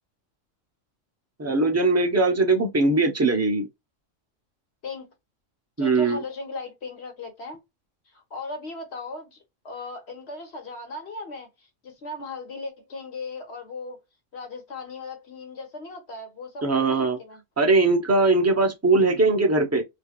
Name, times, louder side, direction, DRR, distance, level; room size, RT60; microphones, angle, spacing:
voice 1, 1.4-3.7 5.8-6.2 16.6-17.2 17.6-19.8, right 3 dB, 15° right, 0.6 m, -20 dB
voice 2, 4.8-5.1 5.8-7.6 8.1-9.4 9.6-14.0 14.3-17.4, left 3 dB, 55° left, 1.5 m, -37 dB
3.2 x 3.0 x 2.4 m
omnidirectional pair, 1.4 m